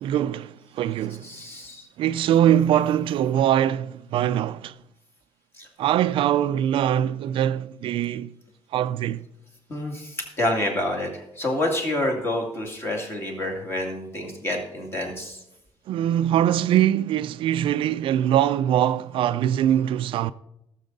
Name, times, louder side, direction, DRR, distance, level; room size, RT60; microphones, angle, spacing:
voice 1, 0.0-1.3 2.0-4.8 5.8-8.3 8.7-9.2 15.9-20.3, right 11 dB, 65° right, 0.4 m, -22 dB
voice 2, 1.2-1.9 5.6-5.7 9.7-15.4, left 1 dB, 25° left, 2.3 m, -28 dB
17.5 x 7.3 x 4.0 m
cardioid pair, 175°, 10 cm